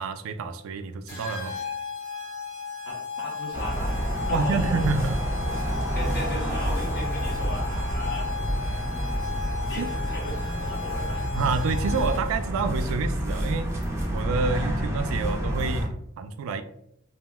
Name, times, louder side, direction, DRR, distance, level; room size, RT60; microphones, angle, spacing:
voice 1, 0.0-1.5 4.3-5.2 9.8-9.9 11.3-13.8 14.1-16.6, right 4 dB, 80° right, 9 dB, 0.3 m, -28 dB
sound 1, 1.1-12.5, left 6 dB, 85° left, 0.9 m, -36 dB
voice 2, 2.8-4.0 4.3-4.9 5.9-8.3 9.7-11.2, left 1 dB, 50° left, -2 dB, 0.7 m, -36 dB
sound 2, 3.5-15.9, equal, 15° right, 0.5 m, -28 dB
2.3 x 2.1 x 3.4 m, 0.74 s
head